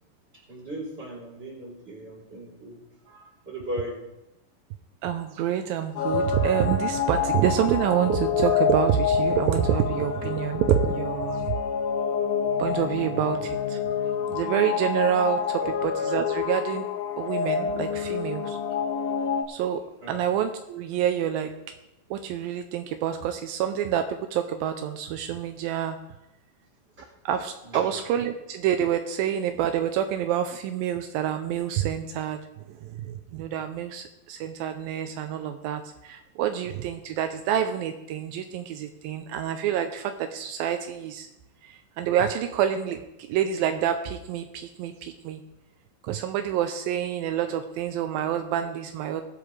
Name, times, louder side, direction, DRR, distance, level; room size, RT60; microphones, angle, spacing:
voice 1, 0.5-4.0 15.6-15.7 20.0-20.2 27.0-27.1 27.6-27.9, equal, 15° right, -3 dB, 3.6 m, -37 dB
voice 2, 5.0-11.5 12.6-13.8 14.3-16.9 17.2-18.6 19.5-19.8 20.1-21.5 22.1-26.0 27.3-32.4 32.7-41.3 41.6-43.0 43.3-45.4 46.0-49.2, right 10 dB, 80° right, 7 dB, 2.3 m, -27 dB
sound 1, 6.0-19.4, left 7 dB, 85° left, 1.4 m, -27 dB
21.0 x 8.4 x 3.2 m, 0.94 s
omnidirectional pair, 4.3 m